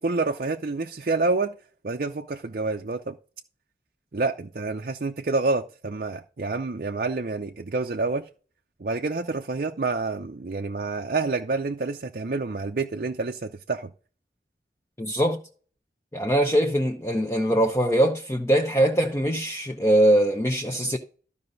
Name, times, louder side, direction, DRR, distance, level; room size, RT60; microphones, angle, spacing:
voice 1, 0.0-1.5 1.8-3.2 4.1-8.3 8.8-13.9, right 3 dB, 50° right, 0.5 m, -28 dB
voice 2, 15.0-15.4 16.1-21.0, right 1 dB, 15° left, 0.7 m, -22 dB
13.0 x 5.5 x 3.9 m
head